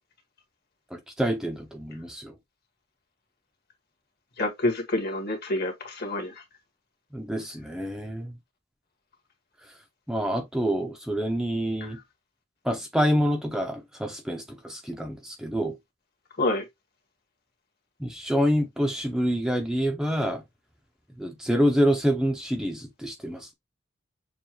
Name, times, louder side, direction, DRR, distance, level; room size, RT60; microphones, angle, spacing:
voice 1, 0.9-2.3 7.1-8.3 10.1-12.0 12.7-15.7 18.0-20.4 21.2-23.5, equal, 5° right, 0.6 m, -27 dB
voice 2, 4.4-6.3 11.8-11.9 16.4-16.6, left 2 dB, 50° left, 1.6 m, -27 dB
6.8 x 2.4 x 2.9 m
head